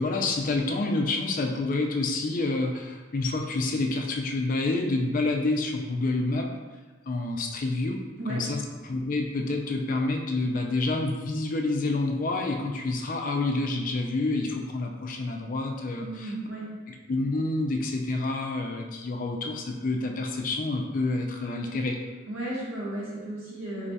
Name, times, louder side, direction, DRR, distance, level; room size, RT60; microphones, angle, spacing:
voice 1, 0.0-6.5 7.1-8.0 8.3-16.3 16.9-22.0, left 2 dB, 40° left, 2 dB, 0.4 m, -28 dB
voice 2, 16.0-16.7 22.3-23.9, right 1 dB, 90° right, -7 dB, 1.3 m, -34 dB
3.1 x 2.3 x 4.0 m, 1.3 s
head